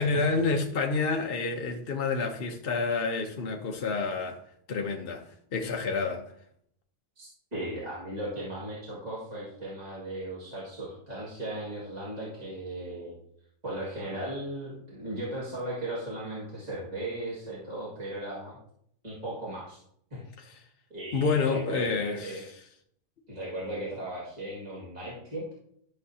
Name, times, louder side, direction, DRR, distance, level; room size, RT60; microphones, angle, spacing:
voice 1, 0.0-4.4 4.7-5.2 5.5-6.2 20.4-20.6 21.1-22.6, left 4 dB, 50° left, 0.9 m, -29 dB
voice 2, 7.2-13.2 13.6-18.6 19.0-19.8 20.1-20.2 20.9-22.5 23.3-25.4, right 1 dB, 30° right, 2.1 m, -37 dB
12.5 x 6.4 x 2.8 m
omnidirectional pair, 1.5 m